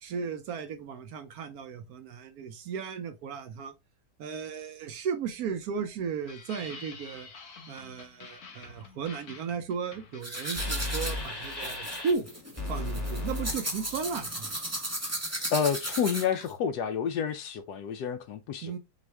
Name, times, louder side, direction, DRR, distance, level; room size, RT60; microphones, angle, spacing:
voice 1, 0.0-3.7 4.2-7.3 7.7-12.3 12.7-14.6 18.6-18.8, right 6 dB, 70° right, 0.9 m, -35 dB
sound 1, 6.2-12.0, left 4 dB, 55° left, 1.4 m, -48 dB
sound 2, 10.2-16.5, right 1 dB, 10° right, 0.8 m, -35 dB
sound 3, 10.6-12.1 12.6-14.2, left 2 dB, 15° left, 1.5 m, -35 dB
voice 2, 15.5-18.8, left 7 dB, 75° left, 1.0 m, -29 dB
6.1 x 2.5 x 3.3 m
omnidirectional pair, 2.0 m